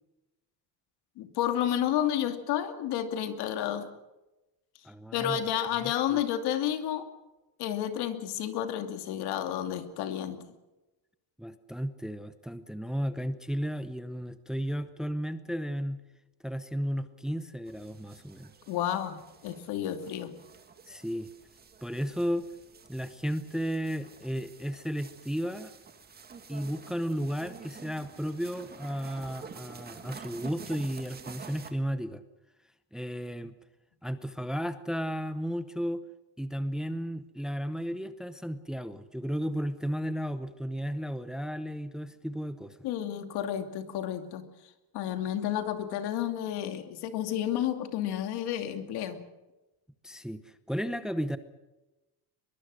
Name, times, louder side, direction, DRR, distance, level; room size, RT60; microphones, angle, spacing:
voice 1, 1.2-3.9 5.1-7.1 7.6-10.4 18.7-20.3 42.8-44.4 44.9-49.2, left 10 dB, 80° left, 7 dB, 2.8 m, -31 dB
voice 2, 4.8-5.5 5.8-6.2 11.4-16.0 16.4-18.5 20.9-21.3 21.8-22.5 22.9-25.7 26.5-32.2 32.9-33.5 34.0-36.0 36.4-42.8 50.0-51.4, equal, ahead, 11 dB, 0.8 m, -34 dB
sound 1, 17.7-31.7, right 5 dB, 25° right, 2.0 m, -49 dB
23.0 x 22.5 x 6.4 m, 1.0 s
cardioid pair, 175°, 39 cm